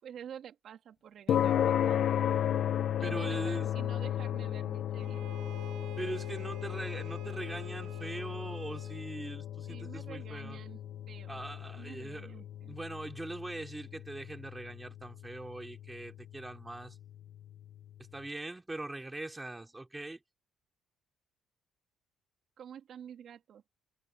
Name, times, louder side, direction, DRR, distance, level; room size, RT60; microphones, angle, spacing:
voice 1, 0.0-2.3 3.0-5.3 9.7-10.8 11.1-11.4 11.7-12.7 22.6-23.6, right 9 dB, 50° right, 3.6 m, -49 dB
sound 1, 1.3-17.8, left 10 dB, 50° left, 1.2 m, -35 dB
voice 2, 3.0-3.7 6.0-10.6 11.3-12.3 12.6-17.0 18.1-20.2, right 2 dB, 10° right, 5.0 m, -41 dB
Bowed string instrument, 5.0-9.2, right 14 dB, 75° right, 6.1 m, -52 dB
cardioid pair, 140°, 0 cm